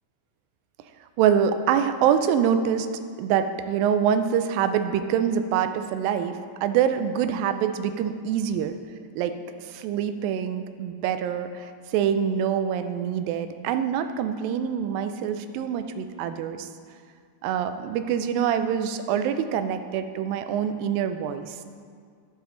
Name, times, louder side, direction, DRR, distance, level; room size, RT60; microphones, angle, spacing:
voice 1, 1.2-2.9 3.2-8.7 9.2-9.3 9.6-16.7 17.4-21.6, right 8 dB, 85° right, 9 dB, 2.3 m, -25 dB
11.5 x 9.3 x 3.8 m, 2.1 s
omnidirectional pair, 4.0 m